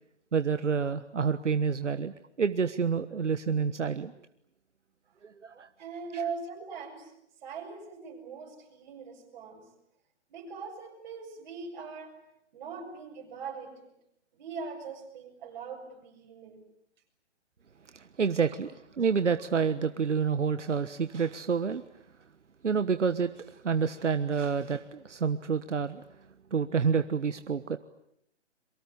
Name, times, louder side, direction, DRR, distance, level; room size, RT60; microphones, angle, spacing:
voice 1, 0.3-4.1 5.2-5.7 6.1-6.2 17.9-21.8 22.6-26.0 26.5-27.8, right 6 dB, 85° right, 11 dB, 1.4 m, -28 dB
voice 2, 5.8-7.1 7.4-9.7 10.3-12.2 12.5-13.9 14.3-16.7, right 5 dB, 40° right, 2 dB, 7.8 m, -41 dB
27.0 x 24.0 x 8.6 m, 0.75 s
hypercardioid pair, 150°, 35 cm